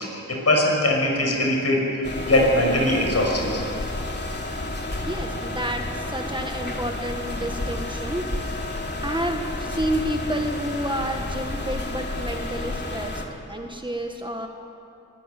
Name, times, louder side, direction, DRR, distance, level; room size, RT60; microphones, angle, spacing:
voice 1, 0.0-3.6, left 1 dB, 55° left, 0 dB, 6.0 m, -21 dB
sound 1, 2.0-13.3, left 2 dB, 35° left, 2.9 m, -31 dB
voice 2, 5.1-8.3 9.0-13.2 13.5-14.5, right 1 dB, 15° right, 3 dB, 1.7 m, -29 dB
23.0 x 15.0 x 9.4 m, 2.8 s
wide cardioid pair, 65°, 31 cm